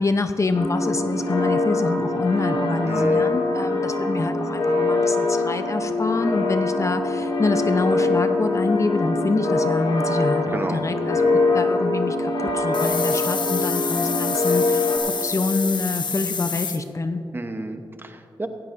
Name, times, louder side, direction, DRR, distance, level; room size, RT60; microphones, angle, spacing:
voice 1, 0.0-11.2 11.5-17.2, left 3 dB, 35° left, 8 dB, 0.7 m, -26 dB
sound 1, 0.5-15.0, left 2 dB, 90° left, 2.2 m, -23 dB
voice 2, 2.8-3.4 10.5-11.3 17.3-18.5, right 2 dB, 25° right, 6 dB, 1.0 m, -32 dB
sound 2, 12.7-16.8, left 5 dB, 65° left, 1.0 m, -28 dB
16.5 x 15.5 x 2.7 m, 2.7 s
cardioid pair, 65°, 8 cm